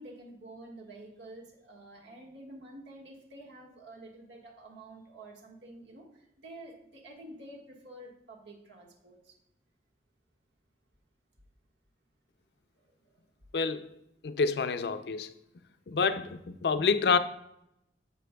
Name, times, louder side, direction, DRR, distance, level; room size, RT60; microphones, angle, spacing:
voice 1, 0.0-9.3 12.8-13.2, right 1 dB, 90° right, 1.5 m, -49 dB
voice 2, 13.5-13.9 14.2-15.3 15.9-17.2, left 5 dB, 70° left, 0.4 m, -27 dB
10.0 x 7.2 x 2.3 m
head